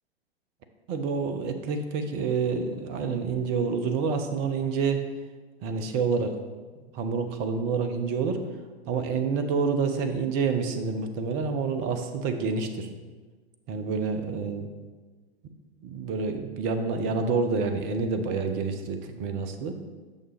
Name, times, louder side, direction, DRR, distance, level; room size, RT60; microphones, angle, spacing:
voice 1, 0.9-5.0 5.6-6.4 6.9-8.4 8.9-12.9 13.7-14.7 15.8-19.7, right 5 dB, 25° right, 7 dB, 0.7 m, -28 dB
8.6 x 6.0 x 3.4 m, 1.3 s
figure-of-eight pair, 105°, 32 cm